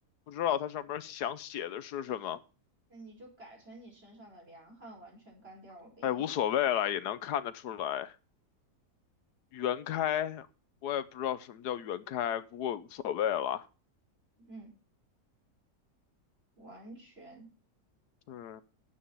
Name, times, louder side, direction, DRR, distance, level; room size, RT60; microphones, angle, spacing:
voice 1, 0.3-2.4 6.0-8.1 9.5-10.5 10.8-13.7 18.3-18.6, left 10 dB, 85° left, 1.4 m, -32 dB
voice 2, 2.9-6.2 14.4-14.7 16.6-17.5, right 2 dB, 40° right, 5.2 m, -51 dB
10.5 x 8.3 x 5.5 m
omnidirectional pair, 1.7 m